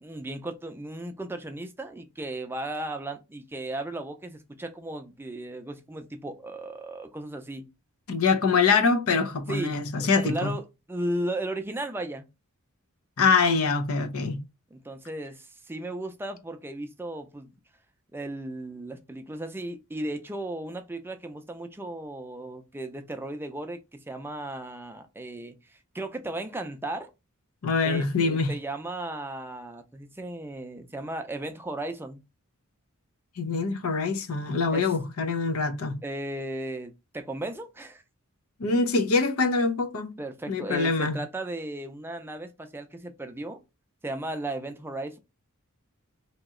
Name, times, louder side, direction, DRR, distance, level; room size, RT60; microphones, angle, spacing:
voice 1, 0.0-7.6 9.5-12.2 14.7-17.5 18.1-27.1 27.8-32.2 34.7-34.9 36.0-38.0 40.2-43.6 44.0-45.2, right 1 dB, 10° right, 0.4 m, -35 dB
voice 2, 8.1-10.5 13.2-14.4 27.6-28.5 33.4-36.0 38.6-40.1 40.5-41.2, left 4 dB, 75° left, 0.6 m, -24 dB
3.0 x 2.8 x 3.6 m
head